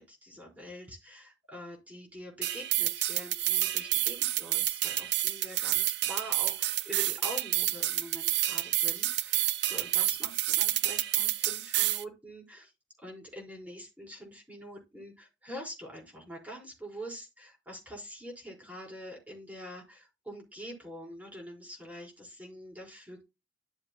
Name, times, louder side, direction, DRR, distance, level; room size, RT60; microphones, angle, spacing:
voice 1, 0.0-12.7 13.0-23.2, equal, 10° right, -1 dB, 4.7 m, -45 dB
sound 1, 2.4-12.0, right 15 dB, 60° right, 0.5 m, -29 dB
12.5 x 7.1 x 2.3 m, 0.25 s
head